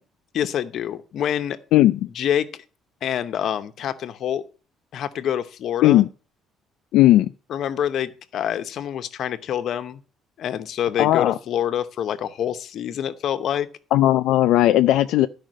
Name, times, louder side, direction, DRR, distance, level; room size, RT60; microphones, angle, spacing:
voice 1, 0.3-1.6 2.1-2.6 3.0-4.4 4.9-6.0 7.5-10.0 10.4-13.7, left 9 dB, 55° left, 0.9 m, -26 dB
voice 2, 6.9-7.3 11.0-11.4 13.9-15.3, left 14 dB, 80° left, 0.4 m, -16 dB
12.0 x 5.1 x 6.3 m
cardioid pair, 145°, 0 cm